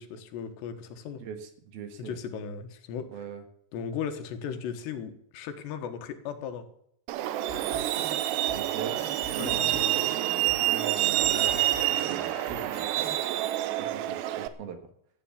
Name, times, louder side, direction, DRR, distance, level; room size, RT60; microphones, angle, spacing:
voice 1, 0.0-1.2 2.0-3.1 3.7-6.7 9.4-10.1, left 7 dB, 85° left, 7 dB, 3.5 m, -37 dB
voice 2, 1.2-2.2 3.1-3.4 8.5-9.0 9.3-9.8 10.6-12.9 13.8-14.8, right 7 dB, 65° right, 7 dB, 3.2 m, -40 dB
Truck, 7.1-14.5, right 14 dB, 90° right, 2.9 m, -28 dB
sound 1, 7.5-13.2, left 1 dB, 15° right, 2.7 m, -45 dB
14.0 x 9.3 x 7.4 m, 0.69 s
omnidirectional pair, 4.9 m